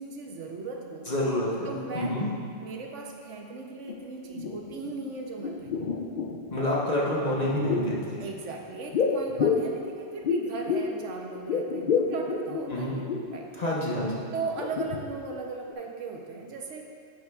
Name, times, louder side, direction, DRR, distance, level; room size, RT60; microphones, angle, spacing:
voice 1, 0.0-1.1 1.6-2.2 2.6-5.7 6.5-6.7 8.2-13.6 14.3-16.9, right 3 dB, 80° right, 1 dB, 1.1 m, -38 dB
voice 2, 1.1-2.3 6.5-8.2 12.7-12.9 13.6-14.2, left 1 dB, 35° left, -5 dB, 1.1 m, -28 dB
sound 1, 3.9-4.0 4.3-5.1 5.4-6.6 7.3-8.0 8.9-11.0 11.3-13.4 13.8-14.0 14.4-15.4 15.7-15.8, left 5 dB, 60° left, 0.6 m, -29 dB
10.5 x 7.5 x 2.4 m, 2.4 s
omnidirectional pair, 1.2 m